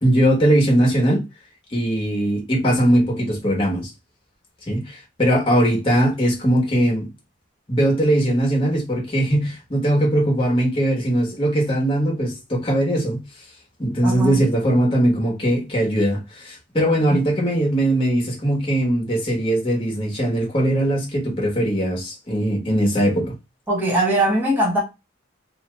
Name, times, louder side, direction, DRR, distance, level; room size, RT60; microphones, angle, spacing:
voice 1, 0.0-1.2 1.7-3.9 4.7-7.1 7.7-13.2 13.8-23.3, right 1 dB, 25° left, 1.1 m, -20 dB
voice 2, 14.0-14.4 17.1-17.2 23.7-24.8, right 1 dB, 10° right, 0.9 m, -20 dB
2.7 x 2.3 x 3.1 m
head